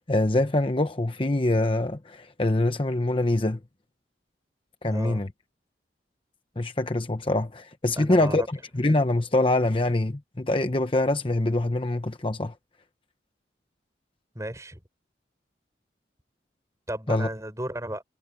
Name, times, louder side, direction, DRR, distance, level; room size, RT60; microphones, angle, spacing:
voice 1, 0.1-3.6 4.8-5.3 6.6-8.4 8.7-12.5 17.1-17.3, left 1 dB, 30° left, 0.9 m, -24 dB
voice 2, 4.8-5.2 7.9-8.5 14.4-14.8 16.9-18.0, right 1 dB, 15° right, 6.9 m, -34 dB
head